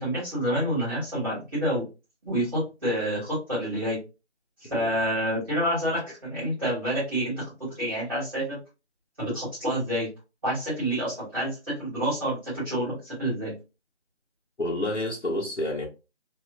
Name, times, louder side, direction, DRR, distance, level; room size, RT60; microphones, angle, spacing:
voice 1, 0.0-1.8 2.3-4.0 4.6-8.6 9.2-10.1 10.4-13.6, equal, 20° right, 1.9 m, -28 dB
voice 2, 14.6-15.9, left 1 dB, 75° left, 1.4 m, -29 dB
3.0 x 3.0 x 2.6 m
figure-of-eight pair, 175°, 35 cm